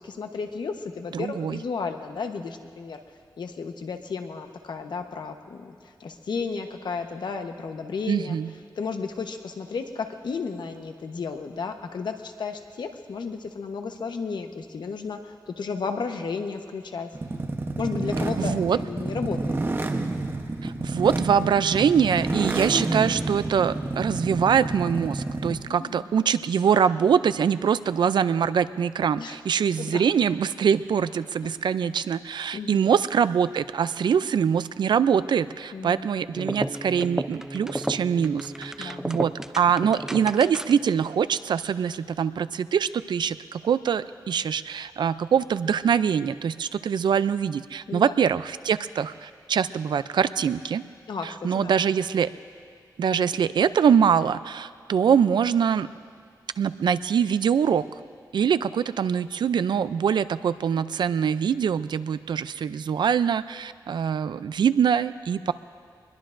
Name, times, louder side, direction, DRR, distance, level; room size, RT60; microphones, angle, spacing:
voice 1, 0.0-3.0 3.4-8.4 8.7-17.1 17.8-19.6 25.5-26.0 29.2-29.4 29.8-30.0 31.4-31.6 32.5-32.9 35.7-36.1 38.8-39.1 47.9-48.2 51.1-51.7, left 5 dB, 80° left, 5 dB, 1.0 m, -33 dB
voice 2, 1.1-1.6 8.1-8.5 18.4-18.8 20.6-50.8 51.2-52.3 53.0-55.9 56.6-57.8 58.3-65.5, right 7 dB, 85° right, 14 dB, 0.4 m, -23 dB
sound 1, 17.1-25.7, right 2 dB, 30° right, 0.9 m, -29 dB
sound 2, 36.3-40.9, right 1 dB, 5° right, 0.5 m, -33 dB
24.0 x 21.5 x 2.6 m, 2.1 s
wide cardioid pair, 105°, 8 cm